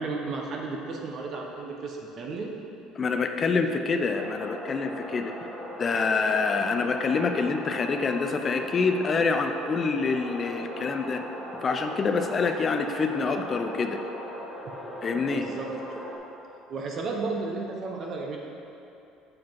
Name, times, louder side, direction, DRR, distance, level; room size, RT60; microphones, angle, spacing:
voice 1, 0.0-2.5 14.6-14.7 15.3-16.1 16.7-18.4, right 3 dB, 40° right, 0 dB, 0.7 m, -33 dB
voice 2, 3.0-5.3 5.8-11.2 11.6-14.0 15.0-15.4, left 4 dB, 30° left, 6 dB, 0.4 m, -26 dB
sound 1, 4.1-16.2, equal, ahead, 1.0 m, -38 dB
7.3 x 4.9 x 4.5 m, 2.8 s
cardioid pair, 140°, 0 cm